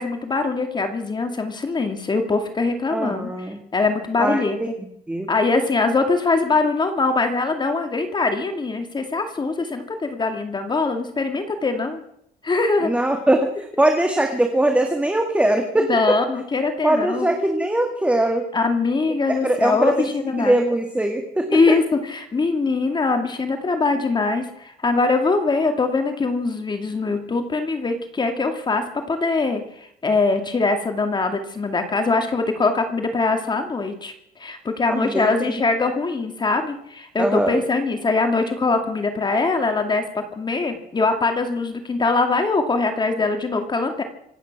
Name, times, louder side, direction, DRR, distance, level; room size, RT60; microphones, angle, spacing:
voice 1, 0.0-4.7 5.3-12.0 12.4-12.9 15.9-17.3 18.5-20.6 21.5-44.0, left 3 dB, 25° left, 6 dB, 2.3 m, -22 dB
voice 2, 2.9-3.6 4.2-4.7 5.1-5.3 12.8-15.9 16.8-18.5 19.4-20.1 20.4-21.5 34.9-35.6 37.2-37.6, right 1 dB, 5° right, 4 dB, 2.1 m, -21 dB
25.5 x 9.3 x 6.0 m, 0.72 s
cardioid pair, 110°, 17 cm